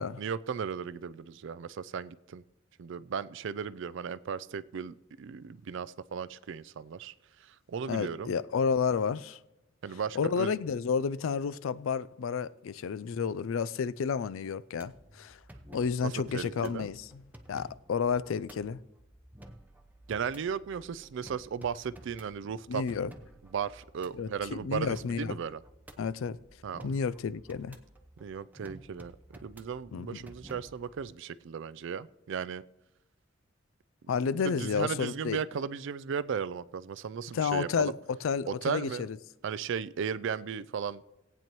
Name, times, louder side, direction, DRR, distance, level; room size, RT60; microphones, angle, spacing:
voice 1, 0.0-2.4 2.8-7.1 7.7-8.3 9.8-10.5 16.0-16.9 20.1-22.8 23.5-25.6 26.6-26.9 28.2-29.2 29.4-32.6 34.4-38.0 38.5-39.1 39.4-41.0, right 6 dB, 65° right, 0.4 m, -36 dB
voice 2, 7.9-9.4 10.2-15.4 15.7-17.2 17.5-18.8 22.7-23.1 24.1-25.4 26.0-26.4 26.8-27.8 29.9-30.1 34.1-35.4 37.3-39.2, left 6 dB, 80° left, 0.4 m, -31 dB
Techno Dread, 14.7-31.0, right 1 dB, 10° right, 0.8 m, -53 dB
18.0 x 9.0 x 3.0 m
head